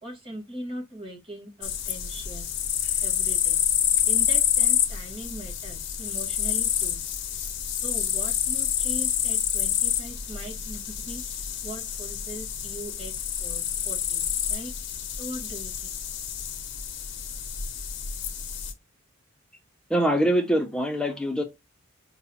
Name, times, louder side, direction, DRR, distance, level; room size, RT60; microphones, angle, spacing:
voice 1, 0.0-2.6 3.0-3.6 4.0-7.0 7.3-7.5 7.8-13.1 13.4-14.2 14.5-14.7 15.2-15.9, right 1 dB, 25° right, 1.4 m, -40 dB
sound 1, 1.6-18.7, left 9 dB, 60° left, 0.5 m, -28 dB
voice 2, 19.9-21.4, equal, 5° left, 0.4 m, -23 dB
4.6 x 2.0 x 2.8 m
head